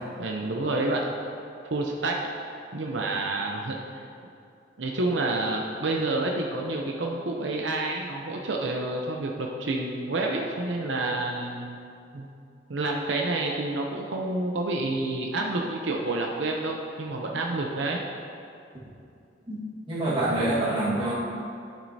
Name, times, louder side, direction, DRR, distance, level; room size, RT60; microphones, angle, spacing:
voice 1, 0.2-1.0 1.6-2.2 2.5-3.8 4.8-11.8 12.1-12.3 12.7-18.0, right 2 dB, 80° right, 0 dB, 0.6 m, -29 dB
voice 2, 19.9-21.1, right 1 dB, 30° right, -7 dB, 1.6 m, -26 dB
11.5 x 6.2 x 2.7 m, 2.5 s
head